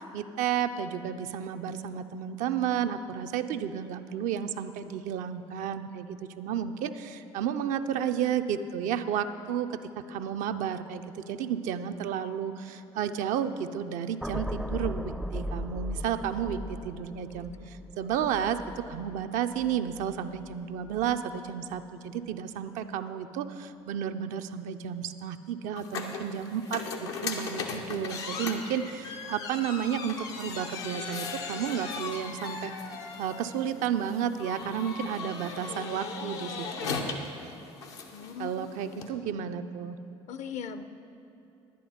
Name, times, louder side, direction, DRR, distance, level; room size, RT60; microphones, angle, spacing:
voice 1, 0.1-9.8 10.1-32.7 33.2-37.2 38.4-40.0, right 8 dB, 65° right, 8 dB, 0.5 m, -32 dB
sound 1, 14.2-20.5 20.9-21.1, left 1 dB, ahead, 0.4 m, -38 dB
voice 2, 16.6-17.8 38.1-39.6 40.3-40.9, left 7 dB, 55° left, 11 dB, 0.6 m, -43 dB
sound 2, 25.8-39.1, left 4 dB, 85° left, 0.8 m, -38 dB
10.5 x 9.9 x 4.3 m, 2.8 s
hypercardioid pair, 60°, 14 cm